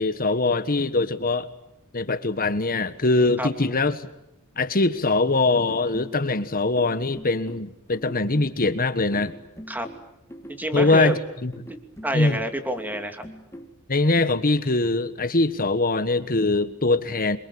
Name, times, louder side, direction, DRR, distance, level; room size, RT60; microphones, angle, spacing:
voice 1, 0.0-1.5 1.9-4.1 4.6-9.3 10.7-11.5 12.1-12.4 13.9-17.4, left 2 dB, 40° left, 12 dB, 1.4 m, -22 dB
sound 1, 5.5-13.8, equal, 15° left, 1.9 m, -43 dB
voice 2, 10.6-11.2 11.7-13.2, equal, 10° right, 7 dB, 2.8 m, -28 dB
27.0 x 23.5 x 8.6 m, 0.84 s
head